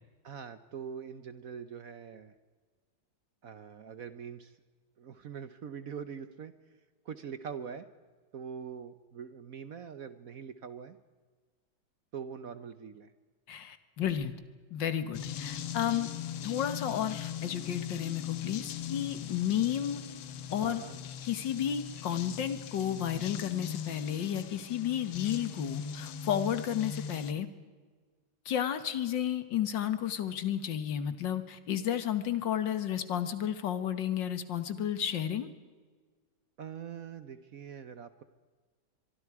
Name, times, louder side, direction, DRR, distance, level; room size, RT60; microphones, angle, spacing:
voice 1, 0.2-2.3 3.4-4.6 5.0-6.5 7.0-7.9 8.3-11.0 12.1-13.1 20.6-21.0 36.6-38.2, right 7 dB, 55° right, 12 dB, 1.1 m, -43 dB
voice 2, 13.5-14.3 14.7-16.1 16.4-20.0 20.5-20.8 21.2-27.5 28.5-35.5, left 10 dB, 70° left, 11 dB, 2.0 m, -32 dB
sound 1, 15.1-27.3, left 8 dB, 90° left, 1.8 m, -40 dB
24.0 x 23.5 x 4.8 m, 1.5 s
omnidirectional pair, 2.1 m